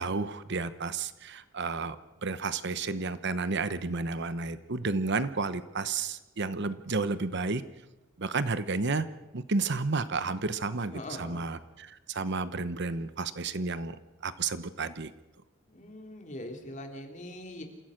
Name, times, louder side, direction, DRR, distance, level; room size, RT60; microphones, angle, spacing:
voice 1, 0.0-2.0 2.2-7.6 8.2-9.1 9.3-14.0 14.2-15.1, right 3 dB, 60° right, 13 dB, 1.0 m, -31 dB
voice 2, 10.9-11.5 15.7-17.6, left 1 dB, 40° left, 3 dB, 3.3 m, -42 dB
27.5 x 16.0 x 6.5 m, 1.0 s
head